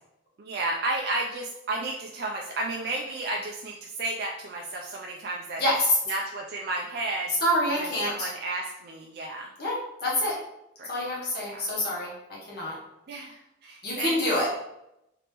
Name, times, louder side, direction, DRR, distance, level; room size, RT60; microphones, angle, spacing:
voice 1, 0.4-5.6 6.1-7.4 7.7-9.5 10.8-11.1 11.4-11.7 13.1-14.5, right 2 dB, 55° right, 0 dB, 0.4 m, -33 dB
voice 2, 5.6-6.0 7.4-8.3 9.6-10.4 10.9-12.1 12.5-12.7 13.8-14.5, left 1 dB, 55° left, -5 dB, 1.3 m, -26 dB
2.9 x 2.9 x 3.4 m, 0.84 s
head